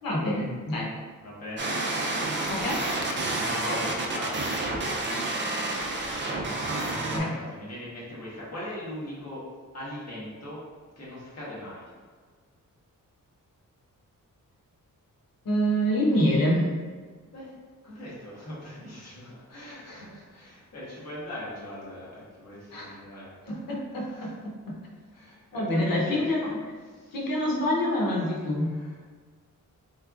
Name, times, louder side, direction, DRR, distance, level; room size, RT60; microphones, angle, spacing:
voice 1, 0.0-0.9 2.5-2.9 7.1-7.3 15.4-16.7 22.7-23.0 23.4-24.8 25.5-26.6 27.1-28.8, equal, 90° left, -3 dB, 0.9 m, -26 dB
voice 2, 1.2-2.6 3.6-5.4 6.8-9.4 9.7-10.6 10.9-11.9 17.3-17.6 17.8-23.6 23.9-24.5 25.1-26.3 26.8-27.2 27.8-29.1, left 1 dB, 50° left, -7 dB, 1.4 m, -41 dB
sound 1, 1.6-7.2, right 2 dB, 35° right, 0.5 m, -29 dB
3.4 x 3.3 x 2.4 m, 1.5 s
wide cardioid pair, 95°, 33 cm